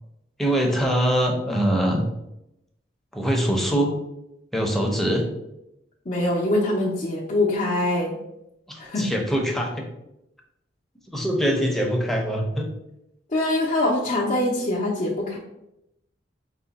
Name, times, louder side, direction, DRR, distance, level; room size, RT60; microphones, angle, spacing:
voice 1, 0.4-2.0 3.1-3.9 4.5-5.3 8.7-9.8 11.1-12.7, equal, ahead, 0 dB, 0.7 m, -23 dB
voice 2, 6.1-8.2 8.8-9.1 13.3-15.4, left 1 dB, 45° left, -4 dB, 0.7 m, -23 dB
4.9 x 2.1 x 4.0 m, 0.85 s
head